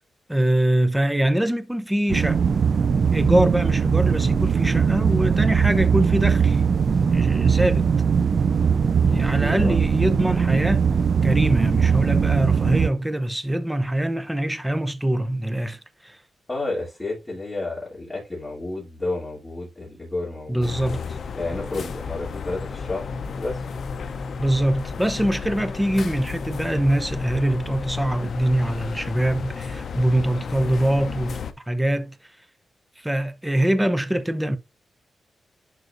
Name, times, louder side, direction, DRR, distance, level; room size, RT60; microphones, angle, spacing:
voice 1, 0.3-2.5 3.1-6.6 7.1-7.9 9.0-10.9 11.2-16.2 20.5-21.2 24.4-31.4 31.7-32.4 33.0-34.6, right 1 dB, 10° right, 0.8 m, -23 dB
sound 1, 2.1-12.9, right 6 dB, 55° right, 0.4 m, -20 dB
voice 2, 9.4-9.8 16.5-20.7 21.3-23.6, left 2 dB, 20° left, 3.1 m, -31 dB
sound 2, 20.6-31.5, left 5 dB, 65° left, 0.7 m, -32 dB
11.0 x 4.0 x 2.6 m
cardioid pair, 105°, 0 cm